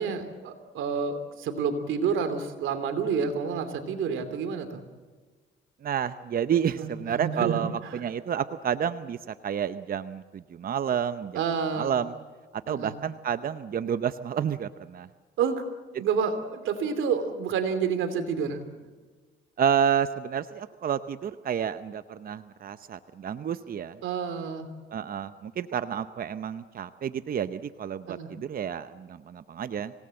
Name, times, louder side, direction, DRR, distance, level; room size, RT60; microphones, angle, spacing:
voice 1, 0.0-4.8 6.8-8.0 11.3-11.9 12.7-13.0 15.4-15.6 16.0-18.6 24.0-24.7 28.1-28.3, right 6 dB, 80° right, 9 dB, 2.8 m, -29 dB
voice 2, 5.8-11.4 11.7-12.1 12.7-15.1 19.6-24.0 24.9-29.9, right 8 dB, 45° right, 12 dB, 0.8 m, -30 dB
25.5 x 18.0 x 7.7 m, 1.4 s
cardioid pair, 90°, 20 cm